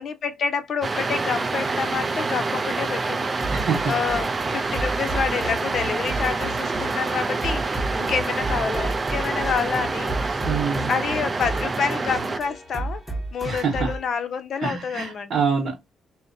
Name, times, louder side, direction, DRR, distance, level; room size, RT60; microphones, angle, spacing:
voice 1, 0.0-10.4 10.9-13.0 13.3-15.4, left 6 dB, 60° left, 0.6 m, -28 dB
Water boiling in a kettle, 0.8-12.4, right 3 dB, 30° right, 0.3 m, -27 dB
sound 1, 3.4-14.1, right 1 dB, 5° right, 0.9 m, -33 dB
voice 2, 3.5-3.9 10.5-10.9 13.4-14.0 14.6-15.8, right 5 dB, 65° right, 1.0 m, -25 dB
2.7 x 2.1 x 2.5 m
cardioid pair, 90°, 0 cm